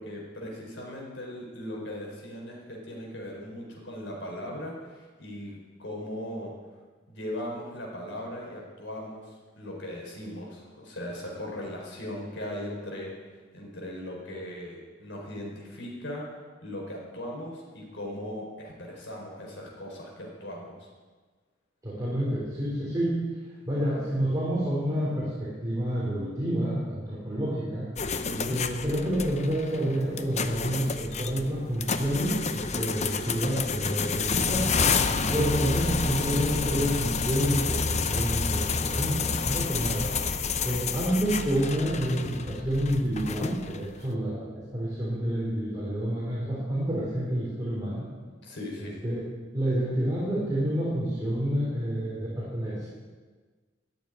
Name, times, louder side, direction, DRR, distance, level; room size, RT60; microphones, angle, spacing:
voice 1, 0.0-6.5 7.1-16.2 16.6-20.9 28.2-28.6 48.4-49.0, left 1 dB, 75° left, -1 dB, 4.5 m, -38 dB
voice 2, 21.8-23.3 23.7-27.9 28.5-34.7 35.3-40.2 40.6-48.1 49.0-49.3 49.5-52.9, equal, 20° right, -7 dB, 3.8 m, -29 dB
sound 1, 28.0-43.9, left 5 dB, 40° left, 0.7 m, -29 dB
14.0 x 7.3 x 10.0 m, 1.4 s
head